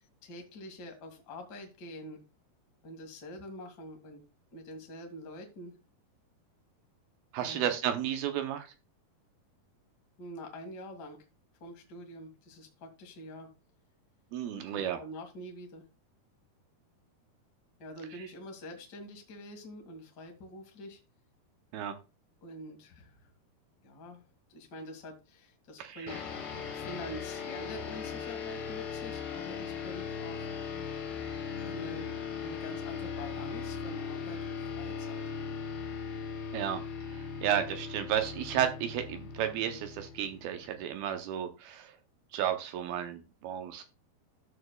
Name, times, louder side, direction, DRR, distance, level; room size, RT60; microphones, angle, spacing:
voice 1, 0.0-2.2 2.8-4.2 4.5-5.8 7.4-7.7 10.2-11.2 11.6-13.5 14.7-15.8 17.8-21.0 22.4-23.3 23.8-24.2 24.5-26.2 26.7-30.5 31.6-35.2, left 1 dB, 45° left, 3 dB, 1.4 m, -46 dB
voice 2, 7.3-8.7 14.3-15.0 21.7-22.0 25.8-26.2 36.5-36.8 37.1-41.9 42.3-43.8, right 10 dB, 80° right, 7 dB, 2.4 m, -33 dB
sound 1, 26.1-40.9, left 6 dB, 70° left, 1.2 m, -39 dB
13.0 x 7.0 x 2.2 m, 0.29 s
omnidirectional pair, 4.6 m